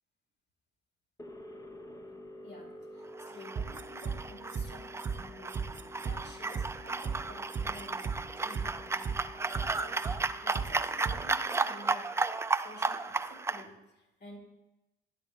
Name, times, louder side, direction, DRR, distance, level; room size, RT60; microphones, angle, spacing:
sound 1, 1.2-12.1, left 2 dB, 15° left, 0.8 m, -50 dB
voice 1, 2.4-9.1 9.6-12.2 12.5-14.4, left 1 dB, 60° left, 2 dB, 2.5 m, -52 dB
sound 2, 3.1-13.6, right 3 dB, 15° right, 0.4 m, -34 dB
sound 3, 3.6-4.2 4.5-4.6 5.0-5.1 5.5-6.1 6.5-6.6 7.0-7.2 7.5-8.2 8.5-8.6 9.0-9.1 9.5-10.2 10.5-10.6 11.0-11.2 11.5-11.6, right 6 dB, 40° right, 1.0 m, -35 dB
10.0 x 6.0 x 5.3 m, 0.99 s
cardioid pair, 90°, 20 cm